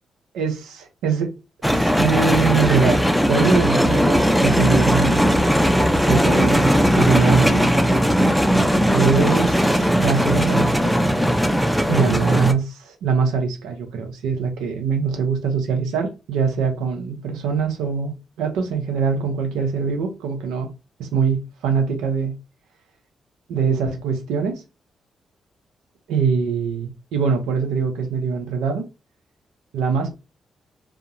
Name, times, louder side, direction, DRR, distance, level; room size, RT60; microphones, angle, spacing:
voice 1, 0.3-1.3 1.7-3.0 3.3-5.2 6.0-7.7 8.9-10.9 11.9-20.7 21.0-22.4 23.5-24.6 26.1-28.9 29.7-30.1, right 5 dB, 85° right, 0.6 m, -23 dB
sound 1, 1.6-12.5, equal, ahead, 0.4 m, -18 dB
2.3 x 2.1 x 2.8 m
supercardioid pair, 55°, 0 cm